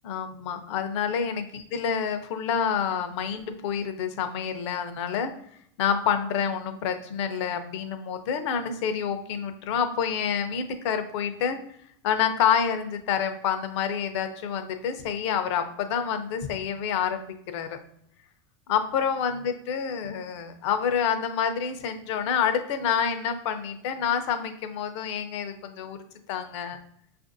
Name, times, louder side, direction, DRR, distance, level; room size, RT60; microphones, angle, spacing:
voice 1, 0.0-5.3 5.8-11.6 12.0-17.8 18.7-26.0 26.3-26.8, left 7 dB, 65° left, 8 dB, 0.6 m, -28 dB
5.5 x 2.5 x 2.6 m, 0.69 s
hypercardioid pair, 110°, 16 cm